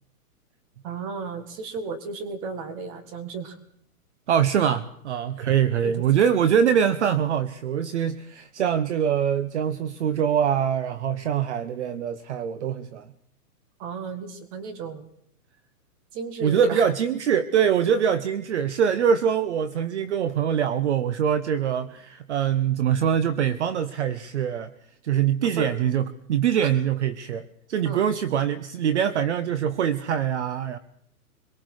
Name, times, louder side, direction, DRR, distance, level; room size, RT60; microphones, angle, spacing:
voice 1, 0.8-3.6 5.8-6.0 13.8-15.1 16.1-16.9 18.1-18.2 25.5-25.7 26.6-26.7 27.8-28.0, right 4 dB, 25° right, 10 dB, 1.8 m, -34 dB
voice 2, 4.3-13.1 16.4-24.7 25.0-30.8, right 8 dB, 50° right, 13 dB, 0.9 m, -23 dB
25.5 x 22.5 x 4.8 m, 0.69 s
hypercardioid pair, 170°, 45 cm